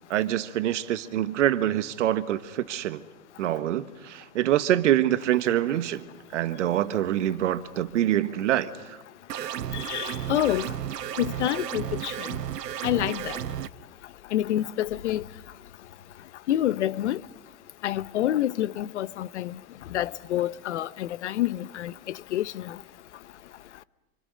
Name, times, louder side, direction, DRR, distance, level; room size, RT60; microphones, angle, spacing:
voice 1, 0.1-3.0 3.4-6.0 6.3-9.0, right 12 dB, 50° right, 1.5 m, -25 dB
sound 1, 9.3-13.7, right 10 dB, 85° right, 1.0 m, -33 dB
voice 2, 9.7-10.6 11.2-12.1 12.8-13.3 14.3-15.2 16.5-17.2 17.8-19.5 19.9-21.9 22.3-22.7, left 13 dB, 45° left, 0.8 m, -27 dB
28.0 x 26.0 x 6.5 m
hypercardioid pair, 155°, 47 cm